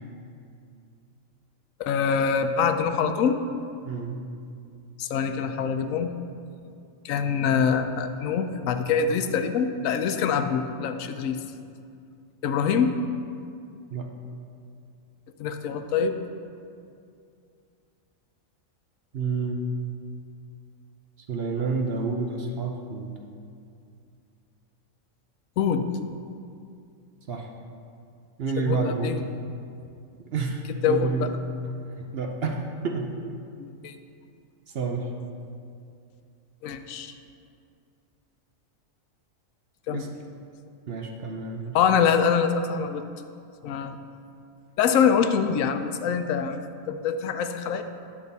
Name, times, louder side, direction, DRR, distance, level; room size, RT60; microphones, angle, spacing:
voice 1, 1.8-3.4 5.0-6.1 7.0-11.4 12.4-12.9 15.4-16.2 25.6-25.9 28.6-29.3 30.8-31.3 33.6-33.9 36.6-37.1 39.9-40.1 41.7-43.0 43.6-44.0 44.8-46.6 46.9-47.8, left 6 dB, 80° left, 8 dB, 1.0 m, -24 dB
voice 2, 3.9-4.2 13.9-14.1 19.1-19.7 21.3-23.2 27.3-27.5 28.4-29.2 30.3-31.4 32.0-32.6 32.8-33.1 34.7-35.1 39.9-40.1 40.9-41.8, right 4 dB, 55° right, 2 dB, 0.8 m, -29 dB
9.9 x 5.8 x 4.0 m, 2.4 s
omnidirectional pair, 1.4 m